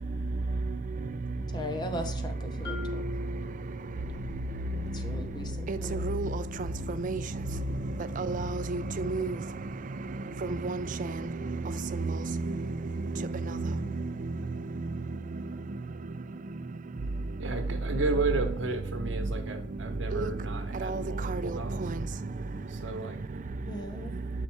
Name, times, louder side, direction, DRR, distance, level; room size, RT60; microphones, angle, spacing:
voice 1, 1.5-3.1 4.9-6.1 23.7-24.1, left 1 dB, 20° left, 0.7 m, -39 dB
Marimba xylophone, 2.6-4.4, left 4 dB, 55° left, 1.5 m, -41 dB
voice 2, 8.2-9.3 10.6-10.8 20.1-20.3 20.9-21.0, right 3 dB, 40° right, 0.4 m, -30 dB
voice 3, 17.4-21.8 22.7-23.2, right 3 dB, 65° right, 1.0 m, -33 dB
6.6 x 4.1 x 4.6 m
head